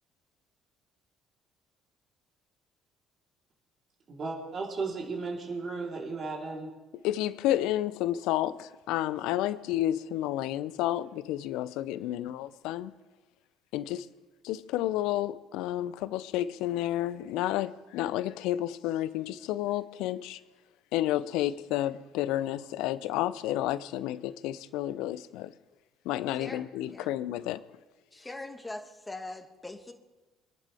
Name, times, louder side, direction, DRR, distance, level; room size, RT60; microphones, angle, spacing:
voice 1, 4.1-6.7, right 4 dB, 45° right, 3.9 m, -35 dB
voice 2, 7.0-12.9 13.7-14.1 14.4-20.4 20.9-25.5 26.0-27.6, left 13 dB, 70° left, 0.7 m, -31 dB
voice 3, 28.1-29.9, left 2 dB, 15° left, 2.1 m, -41 dB
25.0 x 11.0 x 3.6 m
hypercardioid pair, 55°, 0 cm